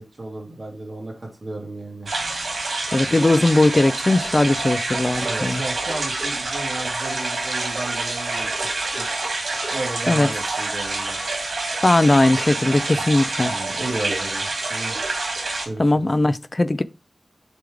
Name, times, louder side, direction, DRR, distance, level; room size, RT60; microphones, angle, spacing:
voice 1, 0.2-2.1 5.2-9.1 9.7-11.2 13.4-14.9 15.6-15.9, right 2 dB, 45° right, 2.8 m, -33 dB
sound 1, 2.1-15.7, right 2 dB, 75° right, 2.3 m, -27 dB
voice 2, 2.9-5.6 10.1-10.3 11.8-13.5 15.8-16.8, left 2 dB, 35° left, 0.5 m, -19 dB
6.8 x 3.6 x 4.9 m
wide cardioid pair, 90°, 0 cm